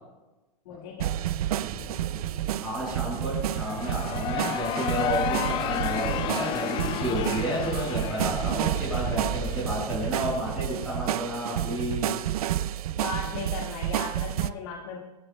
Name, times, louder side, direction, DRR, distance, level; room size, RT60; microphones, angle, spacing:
voice 1, 0.7-1.2 13.0-15.0, left 6 dB, 50° left, 0 dB, 2.0 m, -37 dB
sound 1, 1.0-14.5, right 12 dB, 60° right, 0.6 m, -30 dB
sound 2, 1.6-10.6, right 5 dB, 45° right, 5.7 m, -41 dB
voice 2, 2.6-12.2, equal, ahead, -10 dB, 6.2 m, -31 dB
sound 3, 3.4-10.2, left 11 dB, 25° left, 0.5 m, -32 dB
26.0 x 16.5 x 2.3 m, 1.1 s
hypercardioid pair, 140°, 21 cm